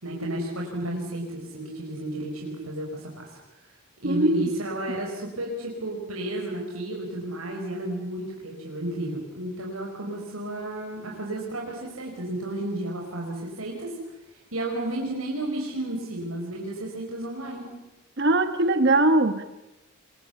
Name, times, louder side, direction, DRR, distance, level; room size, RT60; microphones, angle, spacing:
voice 1, 0.0-3.7 4.0-17.7, right 1 dB, 90° right, -1 dB, 5.1 m, -32 dB
voice 2, 4.0-4.4 18.2-19.4, right 2 dB, 55° right, 9 dB, 1.2 m, -21 dB
28.0 x 23.5 x 7.0 m, 0.98 s
head